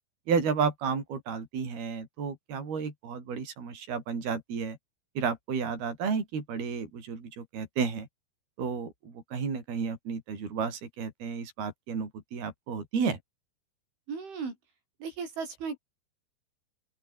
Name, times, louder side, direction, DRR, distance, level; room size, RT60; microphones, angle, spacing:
voice 1, 0.3-4.8 5.2-8.1 8.6-13.2, right 6 dB, 55° right, 7.6 m, -32 dB
voice 2, 14.1-14.5 15.0-15.8, right 5 dB, 85° right, 9.4 m, -36 dB
open air
omnidirectional pair, 5.3 m